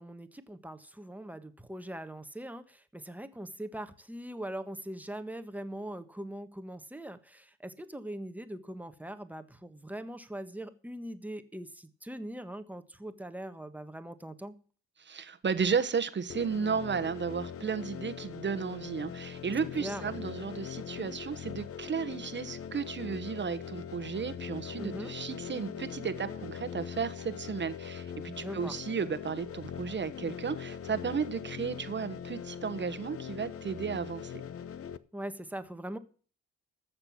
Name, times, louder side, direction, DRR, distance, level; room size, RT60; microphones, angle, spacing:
voice 1, 0.0-14.5 19.8-20.1 24.8-25.1 28.4-28.7 35.1-36.0, right 1 dB, 5° right, 1.4 m, -41 dB
voice 2, 15.0-34.3, right 6 dB, 40° right, 1.3 m, -34 dB
sound 1, 16.3-35.0, left 8 dB, 50° left, 0.9 m, -41 dB
14.0 x 6.9 x 7.3 m
cardioid pair, 90°, 30 cm